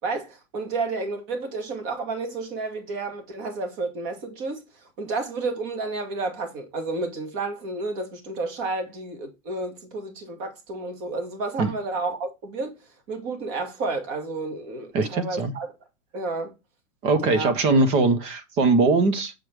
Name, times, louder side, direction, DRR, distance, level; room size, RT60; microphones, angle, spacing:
voice 1, 0.0-12.7 13.1-15.7 16.1-16.5 17.2-17.5, right 3 dB, 35° right, 2.3 m, -31 dB
voice 2, 14.9-15.5 17.0-19.3, right 3 dB, 15° right, 0.5 m, -21 dB
7.6 x 4.7 x 4.7 m
hypercardioid pair, 155°, 41 cm